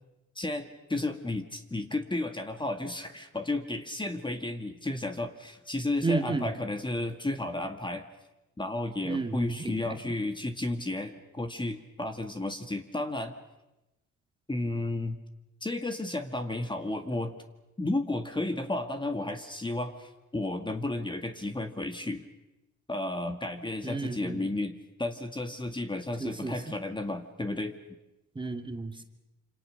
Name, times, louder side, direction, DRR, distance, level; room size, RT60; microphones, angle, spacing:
voice 1, 0.4-8.1 8.6-13.3 14.5-15.2 15.6-17.3 17.8-22.2 22.9-27.7, left 2 dB, 15° left, 6 dB, 2.1 m, -33 dB
voice 2, 6.0-6.5 9.0-10.1 23.8-24.5 26.2-26.8 28.4-29.0, right 3 dB, 15° right, 5 dB, 2.3 m, -33 dB
27.0 x 26.5 x 6.6 m, 0.96 s
cardioid pair, 90°, 30 cm